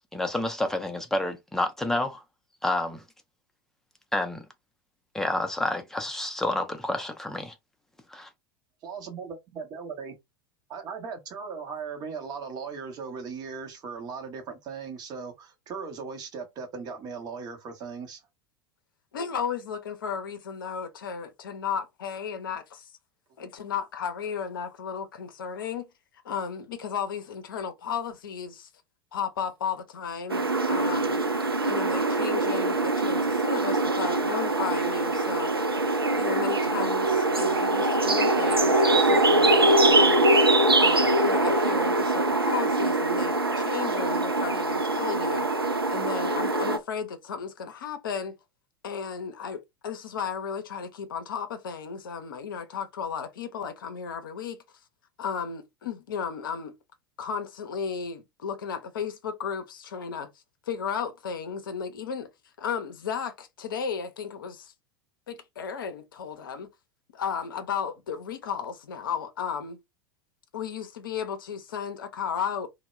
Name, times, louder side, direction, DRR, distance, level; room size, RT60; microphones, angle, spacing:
voice 1, 0.1-2.2 2.6-3.0 4.1-4.4 5.1-7.5 8.1-8.3, left 1 dB, 5° left, 0.5 m, -29 dB
voice 2, 8.8-10.2 10.7-18.2, right 5 dB, 35° right, 0.8 m, -38 dB
voice 3, 19.1-22.9 23.4-25.9 26.2-28.7 29.1-31.2 31.6-35.5 36.0-40.4 40.8-45.5 45.9-48.4 48.8-54.6 55.2-56.7 57.2-60.3 60.7-62.3 62.6-64.7 65.3-66.7 67.1-69.8 70.5-72.7, left 6 dB, 65° left, 0.5 m, -34 dB
sound 1, 30.3-46.8, right 2 dB, 90° right, 0.4 m, -23 dB
2.1 x 2.0 x 3.0 m
figure-of-eight pair, 85°, 12 cm